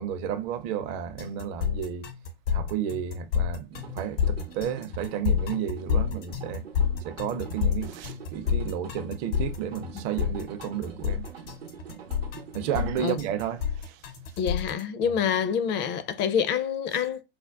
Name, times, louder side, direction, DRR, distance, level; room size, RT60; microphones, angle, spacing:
voice 1, 0.0-2.1 2.5-6.6 7.0-11.3 12.5-14.0, right 9 dB, 45° right, 0.5 m, -32 dB
sound 1, 1.2-14.8, left 7 dB, 70° left, 0.8 m, -29 dB
sound 2, 3.7-12.9, right 6 dB, 90° right, 0.7 m, -45 dB
voice 2, 14.4-17.2, left 7 dB, 35° left, 0.5 m, -27 dB
5.0 x 2.1 x 2.3 m
hypercardioid pair, 85°, 30 cm